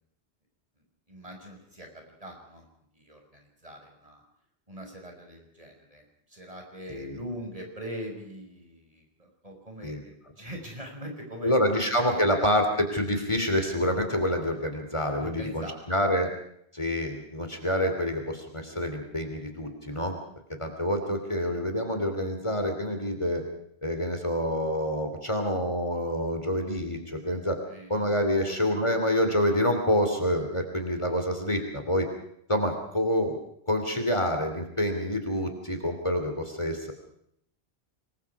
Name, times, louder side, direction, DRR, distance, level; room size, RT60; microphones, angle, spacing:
voice 1, 1.1-2.7 2.9-4.2 4.7-12.3 15.2-15.9 21.0-21.6 27.7-28.8, equal, 35° right, 2 dB, 5.9 m, -43 dB
voice 2, 6.9-7.2 9.8-10.0 11.4-16.3 16.7-20.1 20.6-23.4 23.8-27.6 27.9-32.1 32.5-33.4 33.7-36.9, equal, 30° left, 5 dB, 3.2 m, -27 dB
27.0 x 22.0 x 4.8 m, 0.71 s
omnidirectional pair, 1.1 m